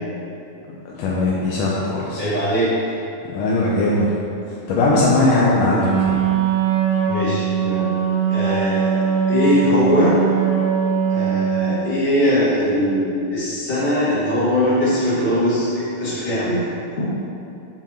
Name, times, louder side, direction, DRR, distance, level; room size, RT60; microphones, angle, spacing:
voice 1, 0.9-2.2 3.3-4.1 4.7-5.9, left 2 dB, 80° left, -5 dB, 2.3 m, -19 dB
voice 2, 2.2-2.7 5.7-5.8 7.1-7.9 8.3-9.0 9.3-10.2 11.1-16.6 17.0-17.1, left 1 dB, 25° left, -14 dB, 1.5 m, -20 dB
Wind instrument woodwind instrument, 5.8-11.9, right 8 dB, 70° right, 1.9 m, -21 dB
7.4 x 5.9 x 4.4 m, 2.7 s
omnidirectional pair, 3.8 m